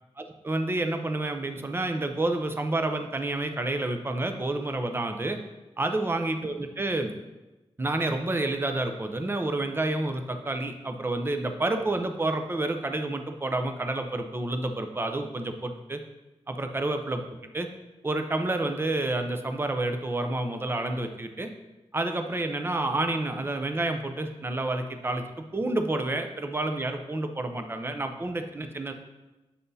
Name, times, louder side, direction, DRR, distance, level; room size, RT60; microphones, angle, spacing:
voice 1, 0.2-5.4 5.8-7.1 7.8-16.0 16.5-17.7 18.0-21.5 21.9-25.2 25.5-28.9, right 2 dB, 20° right, 6 dB, 0.6 m, -29 dB
8.1 x 5.8 x 2.7 m, 1.1 s
wide cardioid pair, 135°, 11 cm